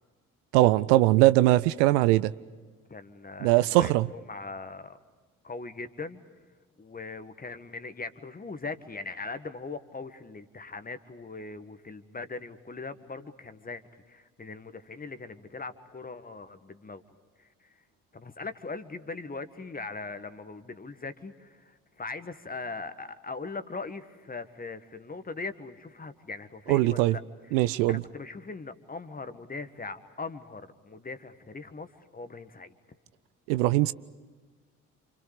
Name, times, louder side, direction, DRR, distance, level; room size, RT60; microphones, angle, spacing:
voice 1, 0.5-2.3 3.4-4.1 26.7-27.1 27.5-28.0 33.5-33.9, right 17 dB, 60° right, 0.6 m, -21 dB
voice 2, 2.9-5.0 5.4-6.2 6.8-17.0 17.4-17.8 18.1-32.7, left 3 dB, 20° left, 1.7 m, -40 dB
28.5 x 26.5 x 5.0 m
figure-of-eight pair, 45°, 41 cm